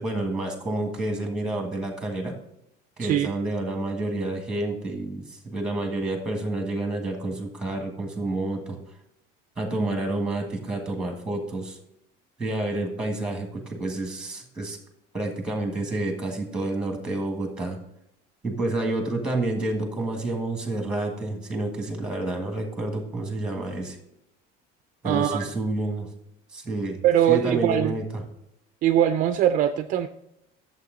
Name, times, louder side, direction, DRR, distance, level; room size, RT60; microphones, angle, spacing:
voice 1, 0.0-2.3 3.0-8.8 9.6-11.8 12.4-14.8 15.1-17.8 18.4-24.0 25.0-26.1 26.5-28.2, right 2 dB, 5° right, 3 dB, 1.4 m, -29 dB
voice 2, 3.0-3.3 25.0-25.4 27.0-28.0 28.8-30.1, right 11 dB, 40° right, 9 dB, 0.4 m, -21 dB
11.5 x 7.5 x 3.8 m, 0.81 s
cardioid pair, 175°, 21 cm